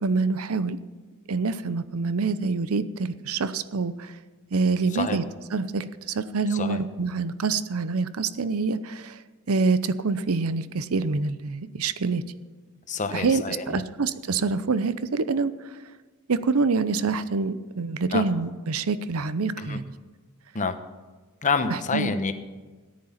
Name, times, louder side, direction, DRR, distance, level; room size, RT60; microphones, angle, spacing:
voice 1, 0.0-0.8 1.3-4.1 4.5-5.2 5.5-9.2 9.5-12.2 13.1-15.8 16.3-19.9 21.7-22.1, right 4 dB, 85° right, 14 dB, 0.7 m, -26 dB
voice 2, 12.9-13.8 18.1-18.2 19.6-19.8 20.5-20.8 21.4-22.3, left 4 dB, 35° left, 8 dB, 1.0 m, -27 dB
13.5 x 10.5 x 5.8 m, 1.3 s
head